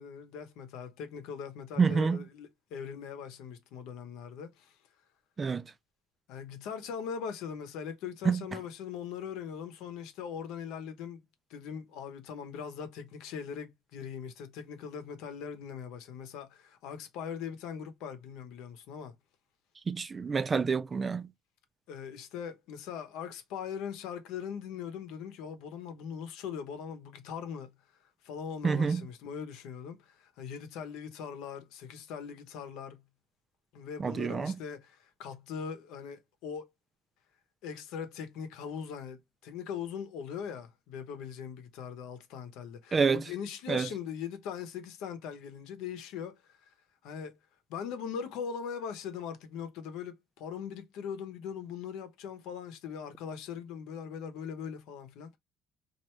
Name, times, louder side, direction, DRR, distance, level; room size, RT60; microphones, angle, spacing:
voice 1, 0.0-4.7 6.3-11.2 11.5-19.1 21.9-27.7 28.2-33.0 33.7-36.7 37.6-46.7 47.0-47.4 47.7-55.4, left 7 dB, 85° left, 0.9 m, -41 dB
voice 2, 1.8-2.2 5.4-5.6 8.3-8.4 19.9-21.3 28.6-29.1 34.0-34.6 42.9-43.2 43.7-43.9, right 5 dB, 20° right, 0.3 m, -27 dB
4.5 x 2.6 x 3.1 m
cardioid pair, 175°, 0 cm